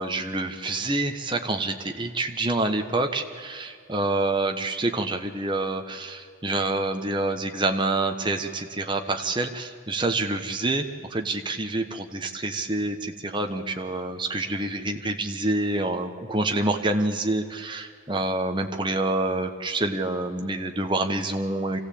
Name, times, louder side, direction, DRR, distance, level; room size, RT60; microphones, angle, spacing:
voice 1, 0.0-21.8, right 2 dB, 25° right, 5 dB, 1.2 m, -27 dB
25.0 x 15.5 x 8.6 m, 2.3 s
head